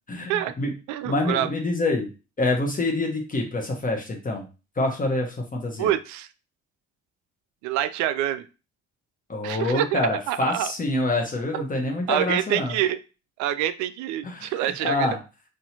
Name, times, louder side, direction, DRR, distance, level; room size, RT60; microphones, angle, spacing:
voice 1, 0.1-0.7 1.0-2.1 2.4-4.4 4.8-5.9 9.3-12.7 14.2-15.2, left 2 dB, 25° left, 1 dB, 1.0 m, -26 dB
voice 2, 0.9-1.5 5.8-6.3 7.6-8.5 9.4-10.7 11.5-11.6 12.1-13.0 13.4-15.1, right 12 dB, 55° right, 13 dB, 0.5 m, -26 dB
4.0 x 2.6 x 2.8 m, 0.31 s
figure-of-eight pair, 50°, 36 cm